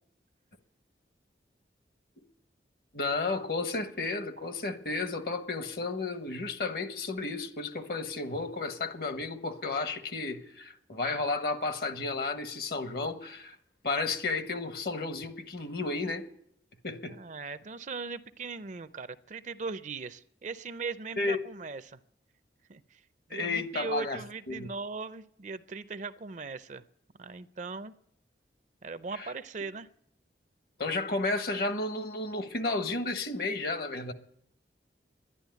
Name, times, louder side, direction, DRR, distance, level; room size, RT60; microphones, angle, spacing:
voice 1, 2.9-13.6 13.8-16.3 16.8-17.2 21.2-21.4 23.3-24.2 24.5-24.7 29.1-29.3 30.8-34.1, left 3 dB, 60° left, 1.3 m, -32 dB
voice 2, 17.1-22.0 22.7-23.0 23.3-26.8 27.2-27.9 28.8-29.9, right 4 dB, 45° right, 0.5 m, -39 dB
11.5 x 11.0 x 9.3 m
head